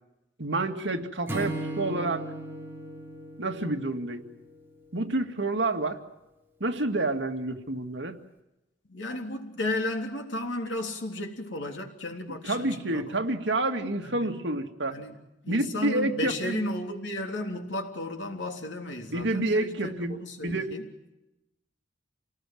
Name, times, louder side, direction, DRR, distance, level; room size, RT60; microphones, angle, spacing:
voice 1, 0.4-2.2 3.4-4.2 4.9-6.0 6.6-8.2 12.4-15.0 15.5-16.7 19.1-20.2 20.4-20.8, right 2 dB, 70° right, 2.2 m, -28 dB
Acoustic guitar / Strum, 1.3-4.6, right 1 dB, 10° right, 3.5 m, -36 dB
voice 2, 8.9-13.0 14.0-14.3 14.9-15.2 15.4-20.8, left 1 dB, 85° left, 3.4 m, -34 dB
28.0 x 19.0 x 7.8 m
head